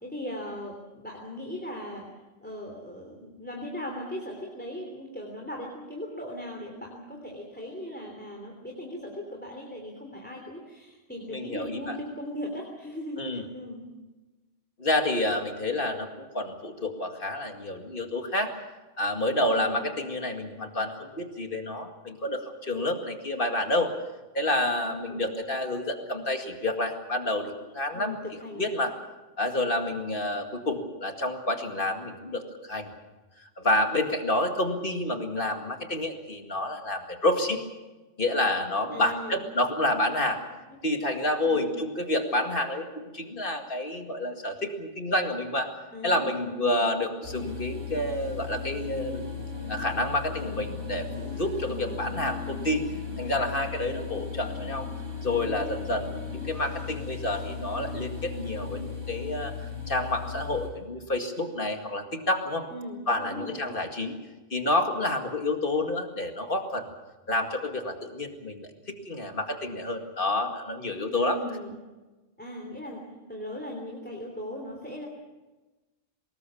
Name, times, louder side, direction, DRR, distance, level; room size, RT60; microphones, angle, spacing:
voice 1, 0.0-2.1 2.4-13.8 19.5-19.7 25.0-25.2 27.9-28.7 38.9-39.5 41.4-41.7 45.9-46.6 51.6-52.0 62.7-63.5 71.1-71.7 72.4-75.1, left 1 dB, 10° left, 0 dB, 3.3 m, -38 dB
voice 2, 11.3-12.0 13.2-13.4 14.8-18.5 19.0-23.9 24.3-28.2 28.6-28.9 29.4-32.9 33.4-37.6 38.2-40.4 40.8-45.7 46.0-49.2 49.7-52.9 53.2-54.9 55.2-59.5 59.9-62.7 63.1-64.1 64.5-66.9 67.3-71.4, left 1 dB, 45° left, 4 dB, 2.3 m, -29 dB
sound 1, 47.2-60.7, left 5 dB, 75° right, 5.2 m, -36 dB
24.5 x 20.0 x 7.1 m, 1.2 s
omnidirectional pair, 1.2 m